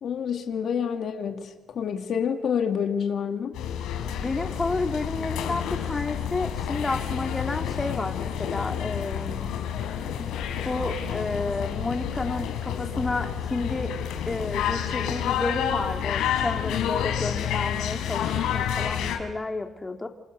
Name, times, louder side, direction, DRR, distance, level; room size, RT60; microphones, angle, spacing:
voice 1, 0.0-3.6, left 7 dB, 65° left, 5 dB, 2.4 m, -28 dB
sound 1, 3.5-19.2, left 9 dB, 90° left, 4.1 m, -29 dB
voice 2, 4.2-9.5 10.2-10.3 10.6-13.9 14.3-20.1, left 3 dB, 20° left, 4 dB, 2.6 m, -31 dB
27.5 x 27.5 x 6.7 m, 1.2 s
cardioid pair, 90°, 0 cm